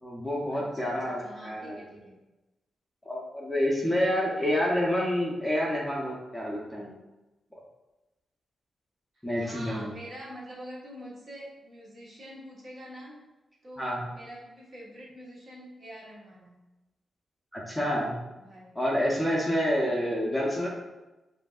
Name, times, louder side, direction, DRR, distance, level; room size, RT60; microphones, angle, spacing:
voice 1, 0.0-1.7 3.1-6.9 9.2-9.9 13.8-14.0 17.5-18.1 18.7-20.7, equal, 5° left, -5 dB, 0.7 m, -28 dB
voice 2, 0.5-2.2 4.1-4.6 9.4-13.1 13.6-16.5 18.4-18.8, equal, 40° right, -4 dB, 1.3 m, -45 dB
7.7 x 2.7 x 2.4 m, 1.0 s
wide cardioid pair, 165°, 0 cm